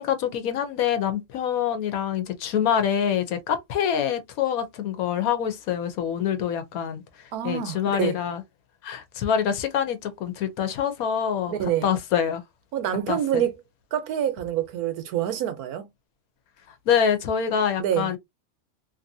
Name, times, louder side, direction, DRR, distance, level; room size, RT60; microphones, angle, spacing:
voice 1, 0.0-7.0 7.4-8.4 8.8-11.5 11.8-12.4 13.1-13.4 16.9-18.2, left 8 dB, 75° left, 1.1 m, -25 dB
voice 2, 7.3-8.1 11.5-11.9 12.7-13.6 13.9-15.9 17.8-18.1, right 10 dB, 85° right, 1.3 m, -26 dB
2.9 x 2.6 x 2.6 m
omnidirectional pair, 1.5 m